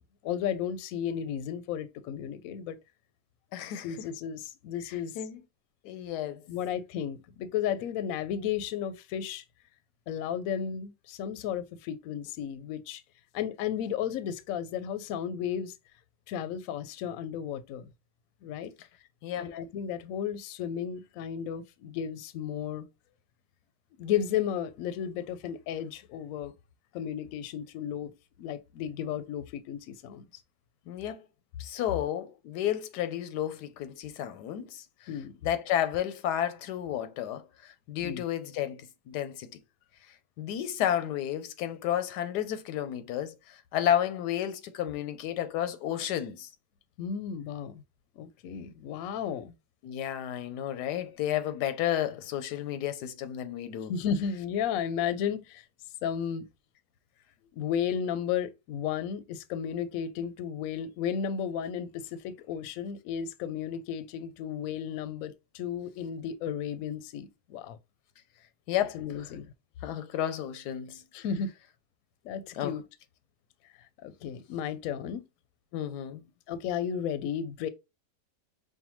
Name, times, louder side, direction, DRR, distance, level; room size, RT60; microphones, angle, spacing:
voice 1, 0.2-2.8 3.8-5.1 6.5-9.4 10.1-13.0 13.3-15.8 16.3-17.9 18.4-18.7 19.4-22.9 24.0-26.5 26.9-28.1 28.4-30.3 35.1-35.3 38.0-38.2 47.0-47.8 48.2-49.5 53.9-55.6 56.0-56.5 57.5-67.8 68.9-69.5 71.1-71.5 72.2-72.8 74.0-75.3 76.5-77.7, left 8 dB, 70° left, 0.9 m, -33 dB
voice 2, 3.5-3.9 4.9-5.4 5.8-6.4 19.2-19.5 30.9-31.2 31.6-34.8 35.4-39.5 40.4-46.5 49.8-53.9 68.7-69.0 69.8-71.3 72.5-72.7 75.7-76.2, left 11 dB, 90° left, 1.2 m, -32 dB
5.6 x 2.2 x 3.0 m
omnidirectional pair, 1.7 m